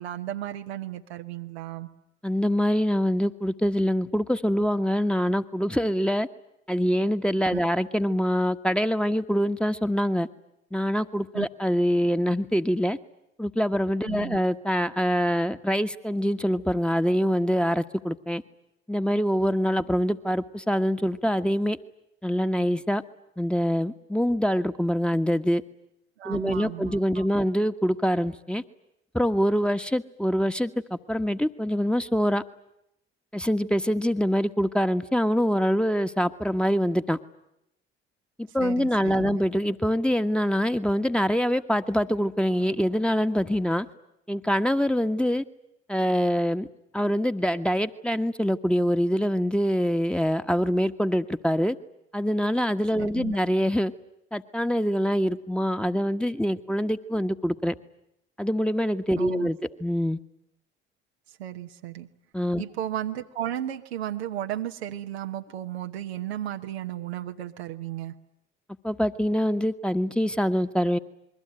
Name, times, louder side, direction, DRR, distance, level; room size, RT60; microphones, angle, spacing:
voice 1, 0.0-1.9 7.5-7.6 11.3-11.5 14.0-14.4 26.2-27.3 38.6-39.4 53.0-53.4 59.2-59.5 61.4-62.1 62.6-68.1, right 12 dB, 85° right, 5 dB, 1.1 m, -34 dB
voice 2, 2.2-6.3 6.7-10.3 10.7-13.0 13.4-18.4 18.9-21.8 22.2-23.0 23.4-25.6 26.2-28.6 29.1-32.4 33.3-37.2 38.4-43.9 44.3-45.4 45.9-46.7 46.9-51.8 52.1-53.9 54.3-57.7 58.4-60.2 62.3-62.6 68.8-71.0, equal, 5° left, 9 dB, 1.4 m, -25 dB
27.5 x 22.0 x 9.0 m, 0.81 s
figure-of-eight pair, 45°, 31 cm